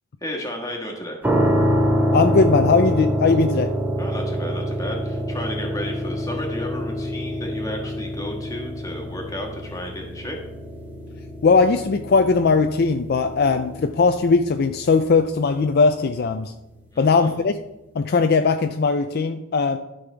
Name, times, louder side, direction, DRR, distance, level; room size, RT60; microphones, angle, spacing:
voice 1, 0.2-1.2 4.0-10.4 16.9-17.3, equal, 15° left, 1 dB, 1.5 m, -33 dB
sound 1, 1.2-16.1, equal, 10° right, 0.9 m, -26 dB
voice 2, 2.1-3.7 11.4-16.5 17.0-17.5 17.9-19.8, left 4 dB, 50° left, 7 dB, 0.4 m, -19 dB
13.0 x 5.5 x 3.4 m, 0.93 s
head